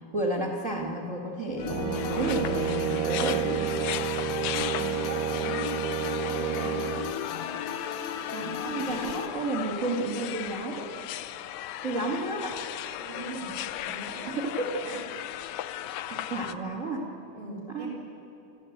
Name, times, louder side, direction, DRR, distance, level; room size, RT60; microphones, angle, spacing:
voice 1, 0.1-3.7 8.3-10.9 11.8-12.6 14.3-14.7 15.9-17.0 17.7-17.9, right 2 dB, 30° right, 0 dB, 1.7 m, -32 dB
sound 1, 1.6-9.3, left 8 dB, 65° left, 2.2 m, -36 dB
Brass instrument, 1.6-7.1, right 13 dB, 85° right, 2.4 m, -30 dB
sound 2, 1.9-16.5, left 12 dB, 90° left, 1.6 m, -37 dB
voice 2, 4.6-7.1 13.0-14.4 14.8-15.0 17.3-17.9, right 2 dB, 70° right, -4 dB, 6.1 m, -41 dB
29.5 x 13.5 x 8.0 m, 2.9 s
omnidirectional pair, 4.0 m